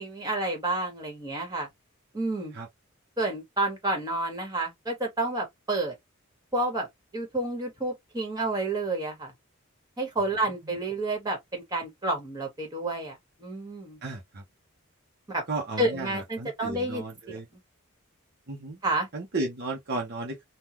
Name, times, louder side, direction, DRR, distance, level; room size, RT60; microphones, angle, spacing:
voice 1, 0.0-1.7 2.1-2.5 3.2-5.9 6.5-6.9 7.1-9.3 10.0-14.0 15.3-15.4 15.8-17.4 18.8-19.1, right 2 dB, 20° right, 1.5 m, -30 dB
voice 2, 14.0-14.4 15.5-17.5 18.5-18.8 19.1-20.4, right 2 dB, 50° right, 0.8 m, -34 dB
3.7 x 2.3 x 2.9 m
head